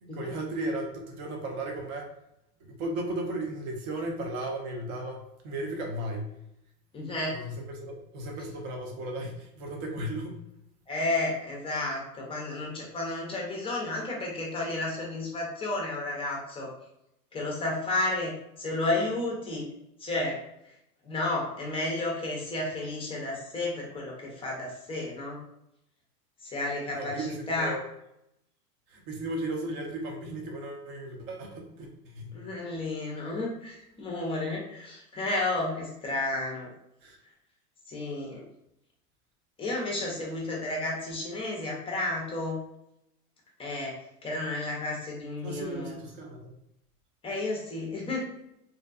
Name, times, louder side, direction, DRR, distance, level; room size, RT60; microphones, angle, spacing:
voice 1, 0.0-2.2 2.6-6.3 7.3-10.4 26.9-27.8 28.9-32.5 37.0-37.2 45.4-46.6, right 1 dB, 45° right, 1 dB, 0.7 m, -35 dB
voice 2, 6.9-7.3 10.9-16.7 17.3-18.3 18.6-19.7 20.0-20.4 20.6-20.7 21.0-25.4 26.4-27.8 32.3-36.7 37.9-38.4 39.6-42.6 43.6-45.9 47.2-48.2, left 2 dB, 10° left, -2 dB, 0.5 m, -32 dB
2.6 x 2.2 x 2.4 m, 0.81 s
hypercardioid pair, 100°, 48 cm